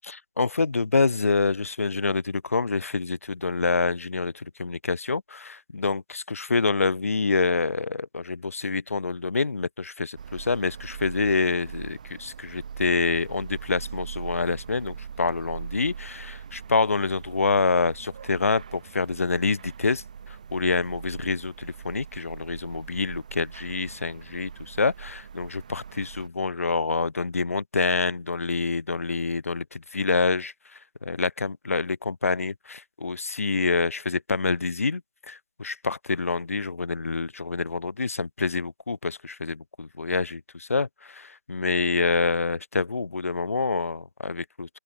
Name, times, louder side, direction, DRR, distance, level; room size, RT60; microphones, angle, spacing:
voice 1, 0.0-35.0 35.3-44.8, left 4 dB, 55° left, 0.4 m, -27 dB
sound 1, 10.2-26.3, right 7 dB, 25° right, 1.9 m, -41 dB
open air
figure-of-eight pair, 165°, 9 cm